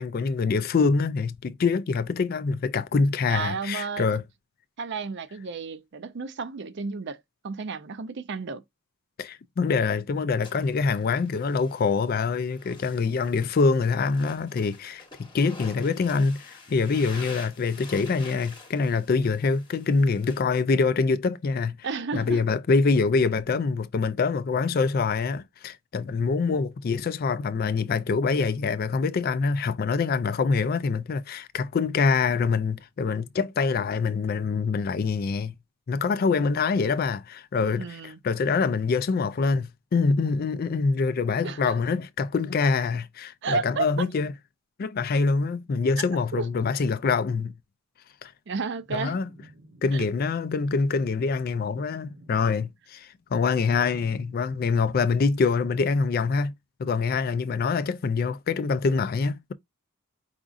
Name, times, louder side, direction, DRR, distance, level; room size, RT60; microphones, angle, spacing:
voice 1, 0.0-4.2 9.2-21.8 22.1-35.5 35.9-44.3 44.8-47.5 48.2-48.3 48.9-49.3 49.8-56.5 56.8-59.5, left 4 dB, 45° left, 0.3 m, -25 dB
voice 2, 3.3-4.1 4.8-7.2 7.4-8.6 21.8-22.4 37.7-38.2 41.4-41.8 43.4-44.1 46.3-46.5 48.5-49.2 49.9-50.1, right 4 dB, 55° right, 0.5 m, -32 dB
sound 1, 10.4-20.4, left 3 dB, 20° left, 1.0 m, -47 dB
sound 2, 48.8-50.4 51.3-52.8 53.2-55.6, right 1 dB, 75° right, 1.0 m, -52 dB
5.0 x 3.6 x 2.5 m
head